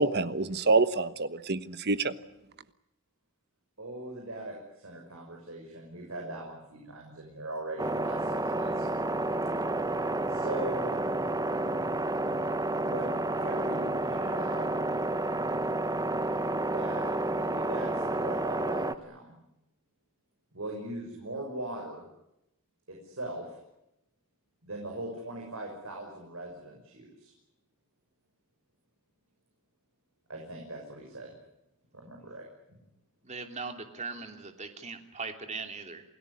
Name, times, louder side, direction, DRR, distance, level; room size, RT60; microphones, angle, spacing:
voice 1, 0.0-2.1, right 3 dB, 50° right, 13 dB, 1.3 m, -26 dB
voice 2, 3.8-8.9 9.4-9.5 10.3-11.0 12.8-14.7 16.6-19.4 20.5-22.0 22.9-23.5 24.6-27.3 30.3-31.4 31.9-32.5, right 1 dB, 70° right, 0 dB, 6.2 m, -40 dB
sound 1, 7.8-19.0, right 2 dB, 15° right, 1.0 m, -30 dB
voice 3, 33.2-33.7 34.0-34.3 34.6-36.0, right 4 dB, 30° right, 6 dB, 3.0 m, -39 dB
28.5 x 18.0 x 9.9 m, 0.86 s
head